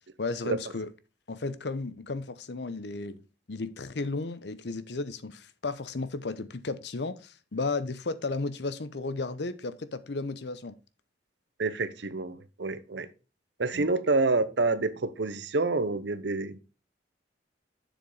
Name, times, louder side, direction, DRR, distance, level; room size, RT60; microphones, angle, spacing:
voice 1, 0.2-0.9 1.3-3.2 3.5-10.7 13.7-13.9, left 3 dB, 65° left, 0.7 m, -34 dB
voice 2, 11.6-13.1 13.6-16.6, right 3 dB, 70° right, 0.8 m, -28 dB
7.3 x 7.0 x 3.9 m
head